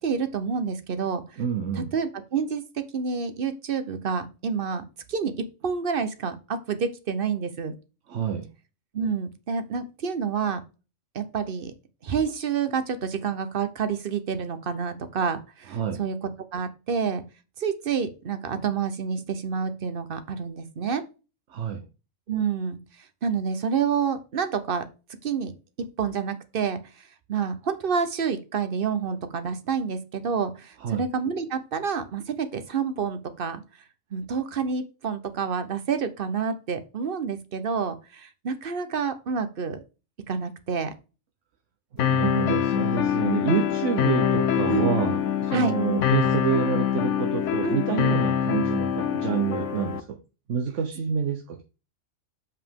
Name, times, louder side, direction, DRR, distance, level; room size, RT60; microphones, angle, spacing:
voice 1, 0.0-1.2 1.7-5.3 5.6-7.7 8.9-10.6 11.1-11.7 12.0-17.2 17.6-21.0 22.3-22.8 23.2-24.9 25.2-25.5 25.8-26.8 27.3-33.6 34.1-39.8 40.3-40.9 42.1-42.6 44.7-45.0 45.5-45.7 47.6-47.9, right 6 dB, 50° right, 10 dB, 0.9 m, -28 dB
voice 2, 1.4-1.9 8.1-8.5 15.7-16.0 21.5-21.8 30.8-31.0 41.9-50.2 50.5-51.6, right 8 dB, 80° right, 5 dB, 1.2 m, -28 dB
sound 1, 42.0-50.0, left 9 dB, 80° left, 1.0 m, -24 dB
7.2 x 5.7 x 3.6 m, 0.31 s
omnidirectional pair, 1.2 m